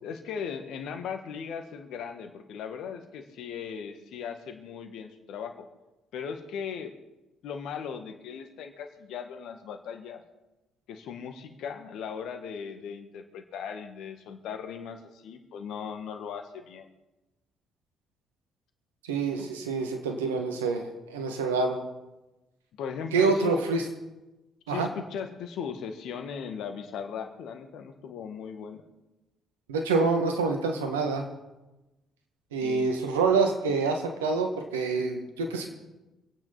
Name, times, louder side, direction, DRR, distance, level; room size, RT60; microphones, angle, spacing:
voice 1, 0.0-5.7 6.1-6.9 7.4-10.2 10.9-16.9 19.4-19.5 22.8-23.6 24.7-28.8 32.6-32.9, left 7 dB, 65° left, 6 dB, 1.6 m, -38 dB
voice 2, 19.0-21.8 23.1-23.8 24.7-24.9 29.7-31.2 32.5-35.7, right 4 dB, 85° right, 4 dB, 1.7 m, -26 dB
26.0 x 9.1 x 4.1 m, 1.0 s
hypercardioid pair, 50°, 0 cm